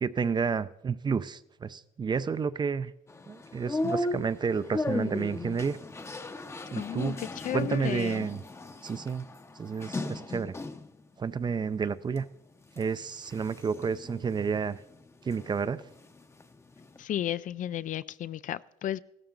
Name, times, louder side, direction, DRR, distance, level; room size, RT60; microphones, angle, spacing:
voice 1, 0.0-2.9 3.3-5.8 6.7-7.2 7.5-8.4 8.8-9.3 9.6-10.5 11.2-12.3 12.8-14.8 15.2-15.8, right 5 dB, 25° right, 0.5 m, -30 dB
sound 1, 3.1-11.0 11.4-12.2 12.7-15.6 15.8-17.0, left 2 dB, 15° left, 0.7 m, -37 dB
voice 2, 6.8-8.3 17.0-19.0, left 11 dB, 50° left, 0.4 m, -33 dB
15.5 x 13.0 x 3.8 m
cardioid pair, 110°, 17 cm